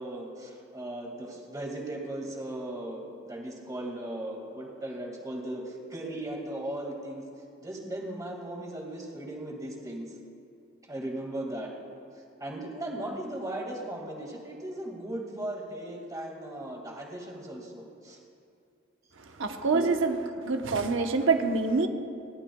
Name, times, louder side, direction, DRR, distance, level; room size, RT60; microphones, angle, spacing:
voice 1, 0.0-7.2 7.6-10.1 10.8-11.7 12.4-18.2 19.7-19.9, right 1 dB, 15° right, 0 dB, 2.0 m, -37 dB
voice 2, 19.2-20.2 20.4-21.9, right 4 dB, 70° right, 5 dB, 0.9 m, -26 dB
30.0 x 12.0 x 2.3 m, 2.5 s
head